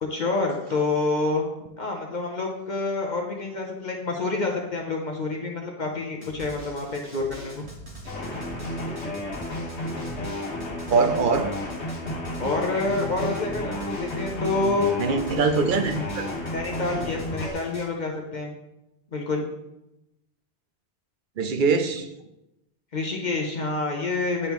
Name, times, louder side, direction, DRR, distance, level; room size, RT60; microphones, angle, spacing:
voice 1, 0.0-1.5 1.8-7.6 12.4-14.9 16.5-18.5 19.1-19.5 22.9-24.5, left 3 dB, 50° left, 1 dB, 0.8 m, -27 dB
Drum, 6.2-17.8, right 1 dB, 80° right, 1.8 m, -43 dB
sound 1, 8.1-17.5, left 1 dB, 85° left, 1.5 m, -32 dB
voice 2, 10.9-11.6 15.0-16.3 21.4-22.1, right 4 dB, 55° right, 7 dB, 0.7 m, -23 dB
9.6 x 3.5 x 3.0 m, 0.90 s
omnidirectional pair, 1.1 m